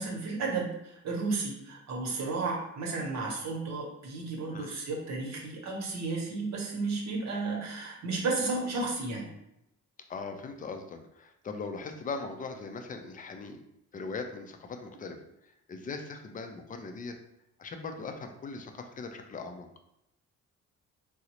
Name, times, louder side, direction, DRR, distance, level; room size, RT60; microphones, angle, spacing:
voice 1, 0.0-9.3, right 3 dB, 60° right, 0 dB, 1.0 m, -33 dB
voice 2, 10.1-13.6 13.9-15.2 15.7-17.1 17.6-19.7, left 4 dB, 30° left, 5 dB, 0.4 m, -39 dB
3.7 x 2.0 x 2.9 m, 0.81 s
cardioid pair, 90°, 30 cm